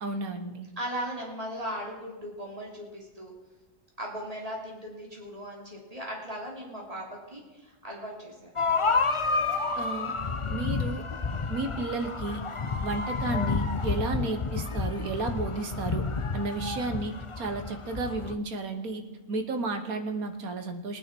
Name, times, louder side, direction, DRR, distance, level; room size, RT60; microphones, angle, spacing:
voice 1, 0.0-0.7 9.8-10.1 10.5-11.0 11.5-12.4 12.8-16.0 16.3-19.0 19.3-21.0, right 3 dB, 70° right, 7 dB, 1.6 m, -32 dB
voice 2, 0.8-3.3 4.0-8.9, equal, 25° right, -2 dB, 3.2 m, -38 dB
sound 1, 8.6-18.4, left 4 dB, 45° left, 0.4 m, -30 dB
19.0 x 9.9 x 4.5 m, 1.2 s
omnidirectional pair, 1.6 m